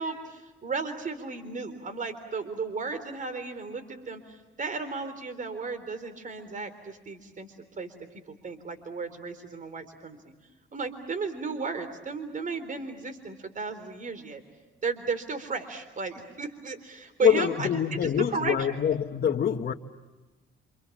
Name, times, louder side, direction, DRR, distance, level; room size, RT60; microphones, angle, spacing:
voice 1, 0.0-7.5 7.8-7.9 8.4-10.2 10.7-14.4 14.8-18.8, right 4 dB, 40° right, 3.8 m, -34 dB
voice 2, 17.2-19.7, left 8 dB, 50° left, 1.3 m, -25 dB
28.0 x 27.5 x 7.3 m
cardioid pair, 90°, 20 cm